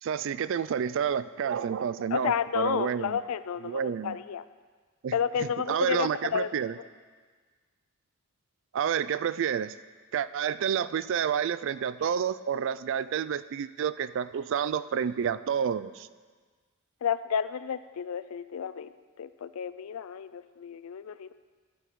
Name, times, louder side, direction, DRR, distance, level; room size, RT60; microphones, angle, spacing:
voice 1, 0.0-3.2 3.6-4.2 5.0-5.1 5.4-6.8 8.7-9.7 10.1-16.1, right 8 dB, 60° right, 15 dB, 0.3 m, -29 dB
voice 2, 2.1-4.4 5.1-6.5 17.0-18.9 19.2-21.3, left 7 dB, 80° left, 15 dB, 0.4 m, -31 dB
12.0 x 7.1 x 4.7 m, 1.5 s
head